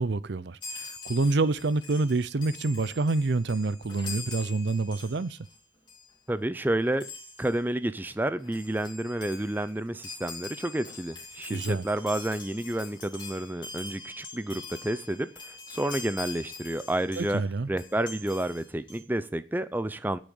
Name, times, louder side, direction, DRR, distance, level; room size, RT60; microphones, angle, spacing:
voice 1, 0.0-5.4 11.5-11.8 17.2-17.7, right 3 dB, 60° right, 0.6 m, -27 dB
Chime, 0.6-5.6 5.9-6.1 7.0-7.6 8.2-8.3 8.4-17.4 17.8-19.0, left 3 dB, 25° left, 3.2 m, -43 dB
voice 2, 6.3-7.1 7.4-17.4 17.7-20.2, right 1 dB, 10° right, 0.4 m, -30 dB
10.0 x 6.3 x 8.7 m
head